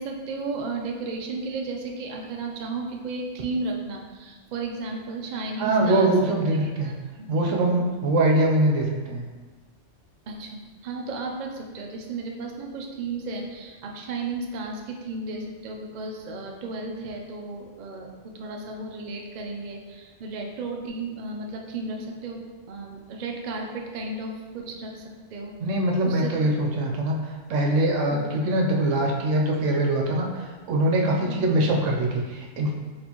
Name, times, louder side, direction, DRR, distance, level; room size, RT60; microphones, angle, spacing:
voice 1, 0.0-6.4 6.6-6.9 7.2-7.5 10.3-25.0 25.3-25.5 26.0-26.5 28.1-28.2 31.2-31.4, right 3 dB, 55° right, 1 dB, 0.5 m, -34 dB
voice 2, 5.6-6.9 7.3-9.2 25.6-32.7, right 1 dB, 80° right, 0 dB, 1.0 m, -23 dB
4.3 x 3.2 x 2.9 m, 1.3 s
omnidirectional pair, 1.3 m